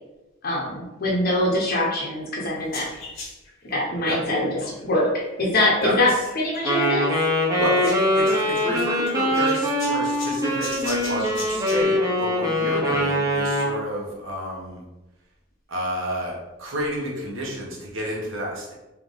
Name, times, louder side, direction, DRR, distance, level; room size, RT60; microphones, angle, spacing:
voice 1, 0.4-2.9 3.6-5.1 5.4-7.1, left 1 dB, 45° left, -3 dB, 0.8 m, -23 dB
sound 1, 2.6-11.8, left 3 dB, 85° left, 1.1 m, -39 dB
voice 2, 5.8-6.2 7.6-14.8 15.7-18.7, equal, 75° right, -3 dB, 1.2 m, -30 dB
Wind instrument woodwind instrument, 6.6-13.8, left 1 dB, 15° right, 0.7 m, -23 dB
3.5 x 2.9 x 3.8 m, 1.0 s
head